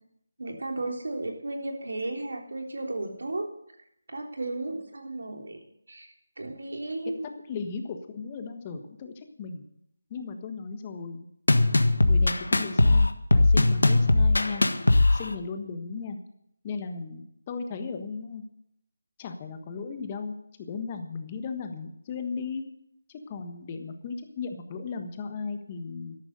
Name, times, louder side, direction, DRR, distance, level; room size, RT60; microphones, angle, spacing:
voice 1, 0.4-3.5 4.1-5.6 5.9-7.3, right 2 dB, 75° right, 3 dB, 3.4 m, -34 dB
voice 2, 7.2-9.6 10.1-11.3 12.0-14.6 15.1-16.2 16.6-18.4 19.2-22.6 23.1-26.2, left 5 dB, 25° left, 6 dB, 1.4 m, -36 dB
sound 1, 11.5-15.3, left 2 dB, 85° left, 1.5 m, -20 dB
13.0 x 11.5 x 6.8 m, 0.75 s
figure-of-eight pair, 165°, 0 cm